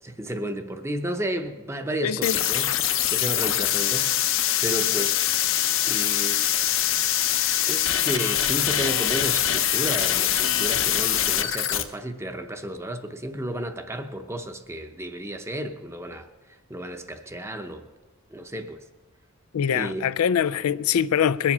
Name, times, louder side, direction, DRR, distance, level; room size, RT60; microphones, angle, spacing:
voice 1, 0.0-4.3 4.6-5.2 5.9-6.8 7.7-17.9 18.3-18.8 19.7-20.1, right 1 dB, 10° right, 0.7 m, -33 dB
voice 2, 2.0-2.4 19.5-21.5, left 8 dB, 90° left, 0.4 m, -23 dB
sound 1, 2.2-11.8, left 11 dB, 60° left, 0.7 m, -23 dB
21.5 x 7.4 x 5.5 m
head